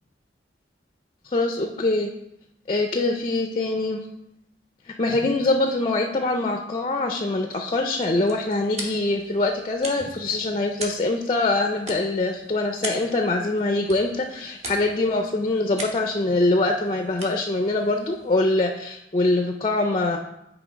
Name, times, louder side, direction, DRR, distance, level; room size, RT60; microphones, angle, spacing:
voice 1, 1.2-2.1 2.7-4.0 4.9-20.2, left 2 dB, 30° left, 4 dB, 0.4 m, -24 dB
sound 1, 7.7-18.9, right 1 dB, 40° right, 1.1 m, -40 dB
8.2 x 3.2 x 5.0 m, 0.86 s
head